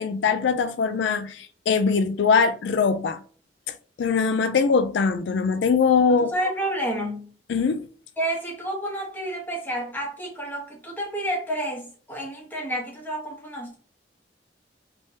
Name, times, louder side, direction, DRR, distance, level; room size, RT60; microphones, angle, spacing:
voice 1, 0.0-3.2 4.0-6.3 7.5-7.9, left 5 dB, 80° left, 0.4 m, -22 dB
voice 2, 6.1-7.3 8.2-13.8, right 1 dB, 10° left, 1.0 m, -30 dB
3.3 x 3.2 x 2.7 m
head